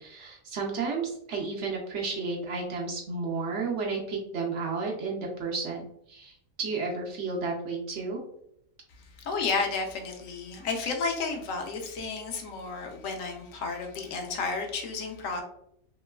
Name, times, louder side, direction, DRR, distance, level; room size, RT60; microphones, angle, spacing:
voice 1, 0.0-5.8 6.1-8.2, right 4 dB, 65° right, -1 dB, 0.8 m, -32 dB
voice 2, 9.0-15.4, left 4 dB, 70° left, 3 dB, 1.0 m, -32 dB
3.0 x 2.9 x 2.3 m, 0.74 s
omnidirectional pair, 1.5 m